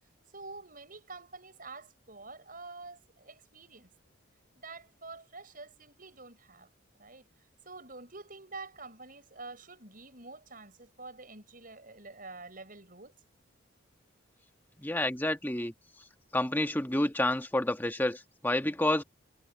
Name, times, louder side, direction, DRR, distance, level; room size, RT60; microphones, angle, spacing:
voice 1, 0.3-3.9 4.5-6.7 7.0-7.2 7.7-13.1, right 3 dB, 45° right, 6.9 m, -47 dB
voice 2, 14.8-15.7 16.3-19.0, left 1 dB, 10° left, 1.3 m, -29 dB
head